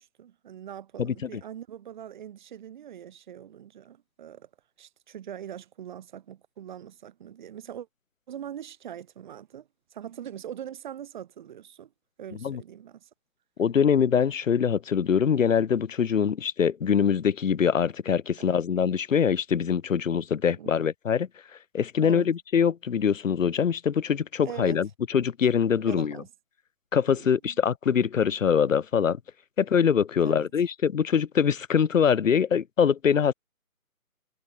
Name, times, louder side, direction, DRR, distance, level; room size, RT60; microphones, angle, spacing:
voice 1, 0.0-4.5 4.8-7.9 8.3-11.9 12.2-13.1 18.4-18.6 20.6-20.9 22.0-22.3 24.4-24.8 25.8-26.3 27.1-27.6 30.2-30.5, right 10 dB, 30° right, 2.9 m, -42 dB
voice 2, 1.0-1.3 12.4-12.6 13.6-21.3 21.7-26.2 26.9-29.2 29.6-33.3, left 7 dB, 60° left, 1.0 m, -23 dB
hypercardioid pair, 160°, 44 cm